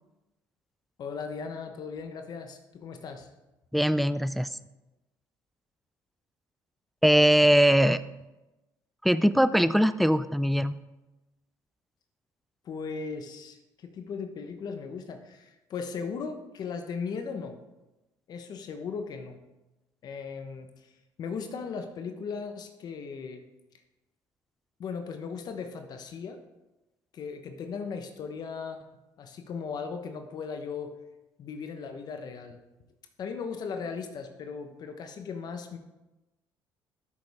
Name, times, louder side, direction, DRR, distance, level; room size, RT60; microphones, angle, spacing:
voice 1, 1.0-3.3 12.6-17.6 18.3-19.4 20.0-20.9 21.2-23.4 24.8-26.4 27.1-28.8 29.2-30.9 31.4-32.6 33.2-35.8, left 5 dB, 55° left, 6 dB, 1.0 m, -37 dB
voice 2, 3.7-4.6 7.0-8.0 9.0-10.7, equal, ahead, 14 dB, 0.3 m, -21 dB
13.0 x 6.6 x 3.6 m, 1.0 s
supercardioid pair, 85°, 8 cm